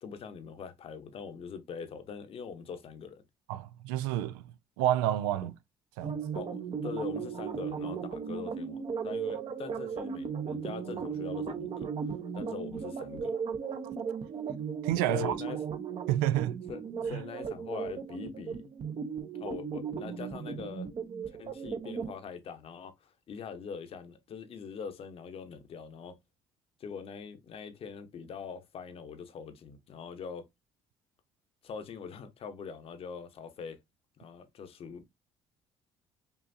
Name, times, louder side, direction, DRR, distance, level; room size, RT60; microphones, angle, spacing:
voice 1, 0.0-3.2 5.4-5.5 6.3-11.9 12.3-13.4 15.1-15.6 16.7-18.6 19.4-20.9 21.3-26.2 26.8-30.5 31.6-33.8 34.2-35.1, left 6 dB, 55° left, 0.9 m, -42 dB
voice 2, 3.5-4.4 4.8-5.5 6.0-6.2 14.8-15.3 16.1-16.6 17.1-17.2, right 13 dB, 90° right, 0.4 m, -29 dB
sound 1, 6.0-22.2, right 6 dB, 50° right, 0.8 m, -36 dB
5.5 x 2.5 x 2.6 m
supercardioid pair, 65°, 12 cm